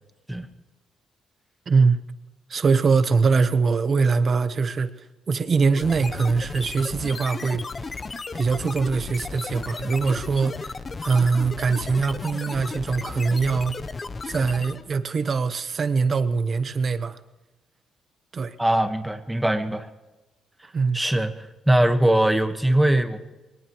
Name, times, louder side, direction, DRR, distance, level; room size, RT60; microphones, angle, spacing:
voice 1, 1.7-2.0 2.5-8.0 8.3-13.8 14.2-17.2 18.3-18.6 20.7-21.0, right 4 dB, 40° right, 1.0 m, -23 dB
sound 1, 5.8-14.9, left 4 dB, 30° left, 0.8 m, -34 dB
voice 2, 18.6-19.9 20.9-23.2, right 1 dB, 5° right, 1.4 m, -21 dB
22.0 x 19.0 x 3.1 m
cardioid pair, 110°, 0 cm